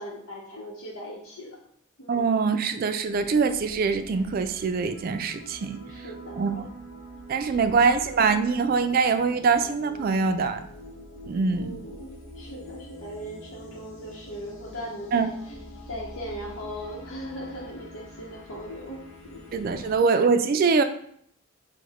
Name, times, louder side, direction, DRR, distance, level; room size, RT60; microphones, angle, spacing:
voice 1, 0.0-1.6 2.0-2.3 5.9-6.6 7.8-7.9 11.5-15.6 15.9-19.9, equal, 90° left, -4 dB, 0.8 m, -39 dB
voice 2, 2.1-5.8 6.3-6.7 7.3-10.6 11.3-11.7 15.1-15.3 19.5-20.8, right 5 dB, 45° right, 9 dB, 0.3 m, -23 dB
sound 1, 3.0-20.0, equal, 65° left, 0.9 m, -45 dB
4.7 x 2.1 x 4.0 m, 0.66 s
head